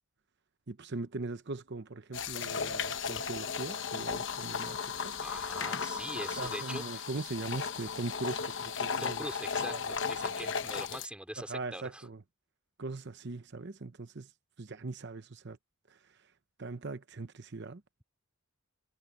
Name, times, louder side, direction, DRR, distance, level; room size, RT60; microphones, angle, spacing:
voice 1, 0.7-4.8 5.0-5.1 6.4-9.2 9.7-9.9 11.4-12.2 12.8-14.3 14.6-15.6 16.6-17.8, right 3 dB, 50° right, 0.8 m, -40 dB
sound 1, 2.1-11.1, left 6 dB, 55° left, 1.0 m, -35 dB
voice 2, 5.2-7.0 9.0-12.1, right 1 dB, 5° right, 4.2 m, -43 dB
head